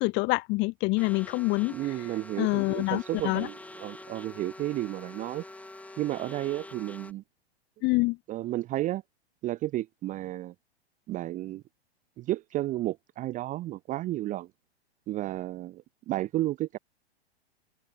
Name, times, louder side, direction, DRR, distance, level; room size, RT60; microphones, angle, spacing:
voice 1, 0.0-1.7 2.4-3.5 7.8-8.2, left 25 dB, 35° left, 1.7 m, -26 dB
sound 1, 1.0-7.1, left 2 dB, 5° left, 2.9 m, -46 dB
voice 2, 1.7-5.4 6.0-7.2 8.3-9.0 9.4-10.5 11.1-11.6 12.2-14.5 15.1-16.8, right 15 dB, 25° right, 0.9 m, -32 dB
open air
figure-of-eight pair, 100°, 32 cm